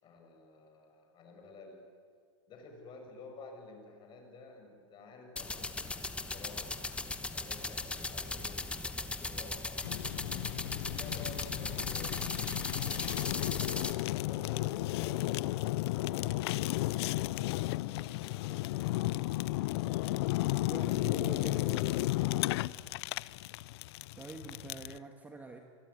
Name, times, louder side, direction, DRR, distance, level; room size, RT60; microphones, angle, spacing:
voice 1, 0.0-1.8 2.5-10.2 10.9-13.2 14.1-15.5 15.9-19.0 19.3-19.6 20.4-22.5, left 3 dB, 30° left, 3 dB, 7.0 m, -52 dB
sound 1, 5.4-13.9, left 3 dB, 5° left, 1.2 m, -38 dB
Fire, 9.8-25.0, left 18 dB, 55° left, 0.6 m, -33 dB
voice 2, 20.5-21.9 24.2-25.6, right 3 dB, 10° right, 4 dB, 1.8 m, -45 dB
25.5 x 22.5 x 9.8 m, 2.1 s
supercardioid pair, 140°, 16 cm